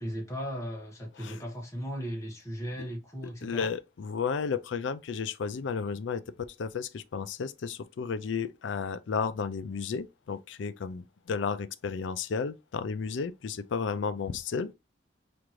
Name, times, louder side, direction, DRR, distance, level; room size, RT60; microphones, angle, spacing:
voice 1, 0.0-3.7, equal, 15° left, 1.1 m, -37 dB
voice 2, 3.4-14.7, left 5 dB, 85° left, 0.4 m, -33 dB
4.8 x 2.5 x 3.0 m
head